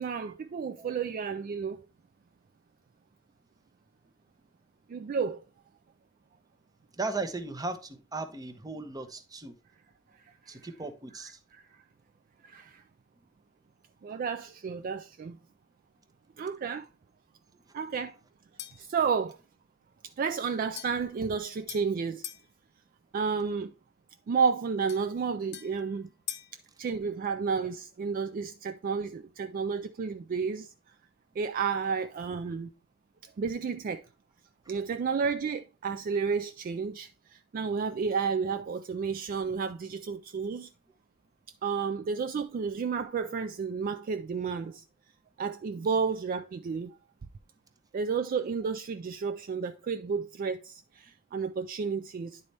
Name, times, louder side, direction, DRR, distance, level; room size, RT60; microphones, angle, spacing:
voice 1, 0.0-1.8 4.9-5.4 10.1-10.6 11.5-11.7 12.4-12.8 14.0-15.4 16.4-16.9 17.7-18.2 18.8-19.4 20.0-22.2 23.1-23.7 24.3-26.1 26.8-30.7 31.4-32.7 33.2-34.1 34.7-40.7 41.6-44.8 45.4-47.0 47.9-52.4, right 5 dB, 45° right, 0.3 m, -31 dB
voice 2, 6.9-9.5 10.5-11.4 17.7-17.8, right 3 dB, 20° right, 0.7 m, -37 dB
sound 1, 18.6-18.9 20.8-22.5 24.9-26.6, left 11 dB, 55° left, 0.7 m, -44 dB
10.0 x 4.1 x 3.2 m
head